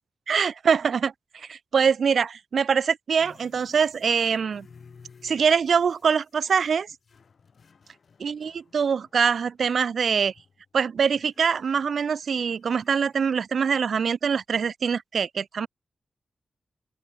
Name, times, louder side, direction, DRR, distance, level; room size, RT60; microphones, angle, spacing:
voice 1, 0.3-4.7 5.2-6.9 8.2-10.3 10.7-15.7, right 6 dB, 75° right, 0.3 m, -24 dB
sound 1, 3.2-9.6 10.1-10.7 11.2-13.2, left 5 dB, 65° left, 1.6 m, -56 dB
open air
wide cardioid pair, 115°, 0 cm